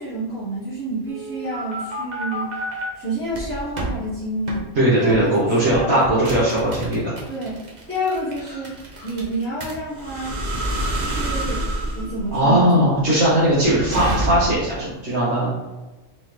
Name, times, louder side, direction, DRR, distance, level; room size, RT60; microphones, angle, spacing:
voice 1, 0.0-2.6 2.9-4.7 5.0-6.0 7.3-8.7 9.0-10.3 10.9-11.6 11.9-12.8, right 1 dB, 10° left, -13 dB, 1.4 m, -28 dB
sound 1, 1.1-2.8 3.3-4.0 4.5-4.6 5.1-5.3 5.7-14.7, right 1 dB, 40° right, 0.9 m, -28 dB
voice 2, 4.7-7.1 12.3-15.5, right 1 dB, 60° right, -9 dB, 1.6 m, -19 dB
4.0 x 4.0 x 3.3 m, 1.1 s
omnidirectional pair, 1.3 m